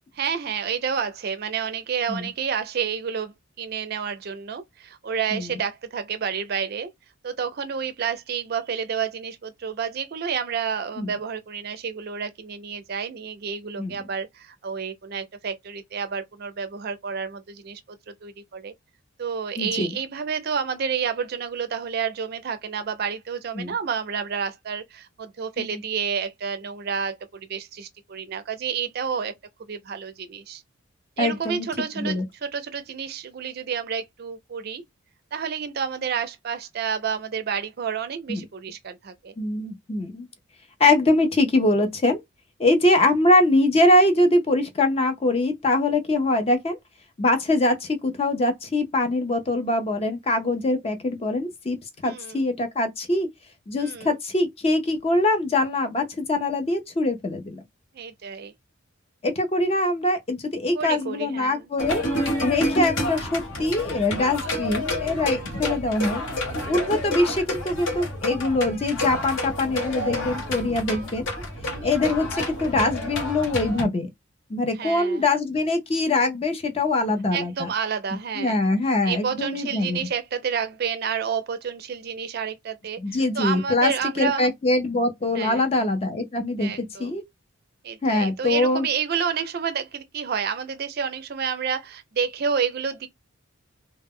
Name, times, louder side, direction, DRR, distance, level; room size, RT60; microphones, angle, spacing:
voice 1, 0.1-6.9 7.2-18.7 19.2-29.3 29.7-30.6 31.2-34.8 35.3-39.3 52.0-52.5 53.8-54.1 57.9-58.5 60.7-61.7 65.4-65.7 71.6-72.0 74.7-75.2 77.3-78.6 79.1-84.5 85.3-85.7 86.6-87.1 87.8-93.1, right 6 dB, 45° right, 0.4 m, -30 dB
voice 2, 19.6-20.0 23.6-23.7 25.6-25.8 31.2-31.7 32.0-32.2 38.3-38.4 39.4-40.3 40.8-42.2 42.6-46.8 47.2-51.8 52.0-53.3 53.7-57.6 59.2-62.0 62.4-66.2 66.7-71.2 71.8-74.1 74.5-77.7 78.4-80.1 83.0-83.9 84.2-87.2 88.0-88.9, left 2 dB, 30° left, 0.4 m, -23 dB
sound 1, 61.8-73.8, left 1 dB, 65° left, 0.9 m, -29 dB
2.0 x 2.0 x 3.6 m
head